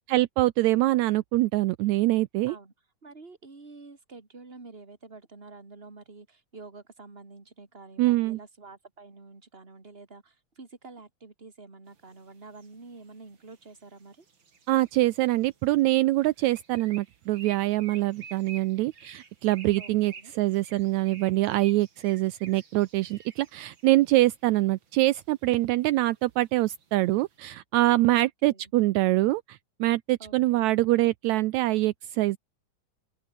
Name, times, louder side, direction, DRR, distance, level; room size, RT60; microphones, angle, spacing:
voice 1, 0.1-2.6 8.0-8.4 14.7-32.4, right 17 dB, 80° right, 1.6 m, -24 dB
voice 2, 3.0-14.3 19.8-20.3 28.1-28.7 30.2-30.8, right 3 dB, 15° right, 3.0 m, -48 dB
sound 1, 11.9-27.4, right 5 dB, 35° right, 3.1 m, -51 dB
open air
omnidirectional pair, 4.0 m